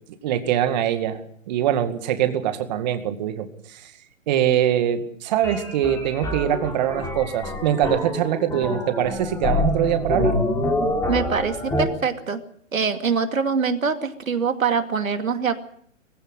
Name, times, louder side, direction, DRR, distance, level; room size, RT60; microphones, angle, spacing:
voice 1, 0.2-1.2 1.5-3.9 4.3-10.3, right 10 dB, 35° right, 9 dB, 2.2 m, -23 dB
sound 1, 5.4-11.8, left 1 dB, 5° left, 3.7 m, -26 dB
voice 2, 11.1-12.4 12.7-15.6, right 5 dB, 80° right, 7 dB, 2.5 m, -24 dB
21.5 x 15.5 x 7.9 m, 0.65 s
hypercardioid pair, 150°, 40 cm